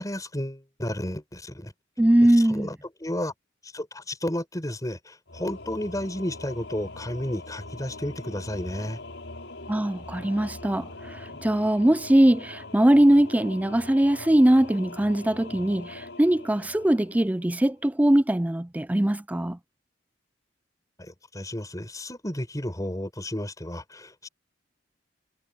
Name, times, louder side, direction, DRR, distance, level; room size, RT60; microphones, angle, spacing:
voice 1, 0.0-1.7 2.4-3.3 3.6-9.0 21.0-24.3, left 1 dB, 20° left, 6.7 m, -32 dB
voice 2, 2.0-2.7 9.7-19.6, right 1 dB, 10° right, 0.4 m, -21 dB
Singing / Musical instrument, 5.3-17.8, left 2 dB, 75° left, 6.8 m, -42 dB
head